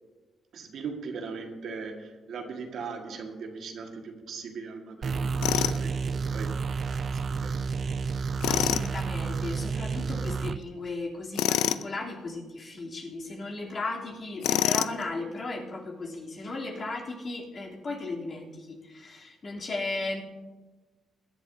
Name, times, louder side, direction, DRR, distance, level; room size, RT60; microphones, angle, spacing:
voice 1, 0.5-7.8 8.5-8.7, right 5 dB, 65° right, 3 dB, 1.7 m, -40 dB
sound 1, 5.0-10.6, right 5 dB, 50° right, 0.4 m, -30 dB
Tools, 5.4-5.8 8.4-8.9 11.4-11.9 14.4-15.0, left 12 dB, 90° left, 0.4 m, -26 dB
voice 2, 8.5-20.2, left 2 dB, 40° left, -3 dB, 3.1 m, -36 dB
21.5 x 11.0 x 2.7 m, 1.3 s
cardioid pair, 90°, 0 cm